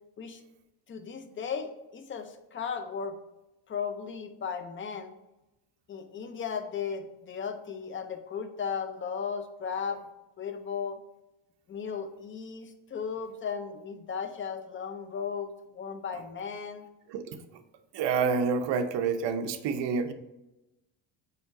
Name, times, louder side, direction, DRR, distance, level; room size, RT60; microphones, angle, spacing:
voice 1, 0.9-3.2 3.7-5.1 5.9-10.0 10.4-11.0 11.7-16.9, left 6 dB, 25° left, 7 dB, 0.6 m, -36 dB
voice 2, 17.9-20.1, right 5 dB, 65° right, 7 dB, 0.8 m, -28 dB
5.5 x 4.6 x 4.7 m, 0.97 s
cardioid pair, 145°, 47 cm